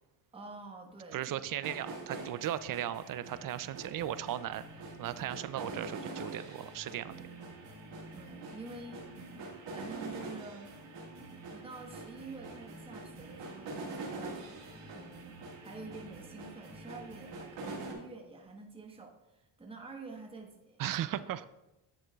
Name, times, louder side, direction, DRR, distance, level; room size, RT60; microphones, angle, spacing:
voice 1, 0.3-1.4 8.1-9.1 9.7-10.9 11.3-14.4 14.9-20.8 21.4-21.5, right 3 dB, 15° right, 2 dB, 1.1 m, -48 dB
voice 2, 1.1-4.6 5.0-7.2 20.8-21.5, right 11 dB, 50° right, 15 dB, 0.5 m, -36 dB
sound 1, 1.6-17.9, right 3 dB, 75° right, 1.9 m, -45 dB
9.8 x 7.0 x 2.3 m, 0.93 s
cardioid pair, 85°, 43 cm